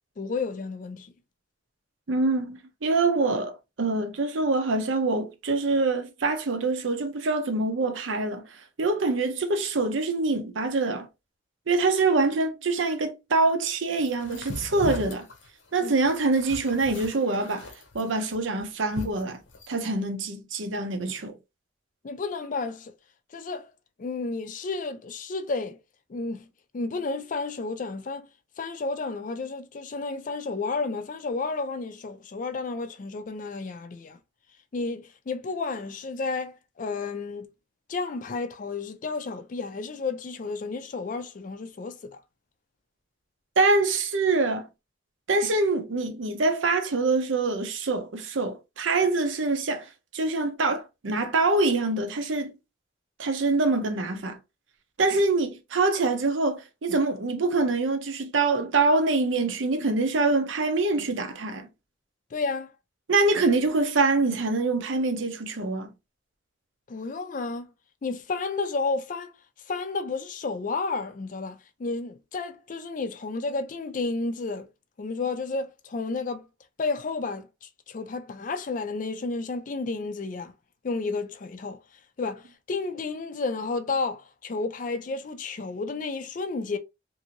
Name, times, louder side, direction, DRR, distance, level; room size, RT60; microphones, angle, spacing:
voice 1, 0.2-1.1 15.8-15.9 22.0-22.9 23.3-23.7 24.0-25.8 26.1-26.5 26.7-28.3 28.6-34.2 34.7-37.5 37.9-42.2 62.3-62.7 66.9-67.7 68.0-69.3 69.7-74.7 75.0-76.4 76.8-80.5 80.8-81.8 82.2-86.8, left 3 dB, 40° left, 0.4 m, -31 dB
voice 2, 2.1-11.1 11.7-15.3 15.7-17.7 17.9-19.4 19.7-21.4 43.6-44.7 45.3-49.9 50.1-52.5 53.2-54.4 55.0-61.7 63.1-65.9, right 3 dB, 80° right, 0.7 m, -25 dB
sound 1, 14.0-19.8, left 2 dB, 85° left, 0.8 m, -39 dB
2.6 x 2.6 x 2.9 m
head